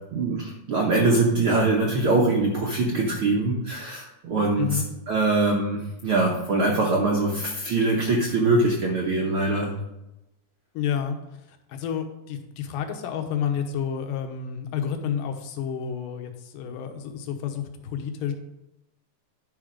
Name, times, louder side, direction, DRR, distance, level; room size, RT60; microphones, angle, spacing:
voice 1, 0.1-9.7, right 2 dB, 70° right, -1 dB, 1.2 m, -23 dB
voice 2, 4.6-4.9 10.7-11.2 11.5-18.3, left 8 dB, 90° left, 5 dB, 2.5 m, -30 dB
10.5 x 5.1 x 5.0 m, 0.93 s
omnidirectional pair, 3.8 m